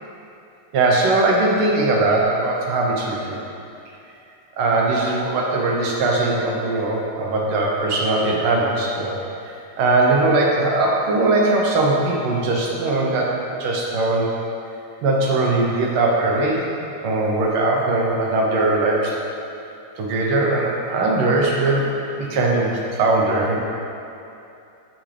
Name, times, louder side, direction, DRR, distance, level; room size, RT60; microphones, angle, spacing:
voice 1, 0.7-3.4 4.6-9.2 9.4-14.3 15.0-16.7 17.0-19.2 20.0-21.8 22.1-23.6, right 2 dB, 80° right, -2 dB, 1.9 m, -20 dB
7.5 x 6.2 x 3.3 m, 2.7 s
omnidirectional pair, 2.3 m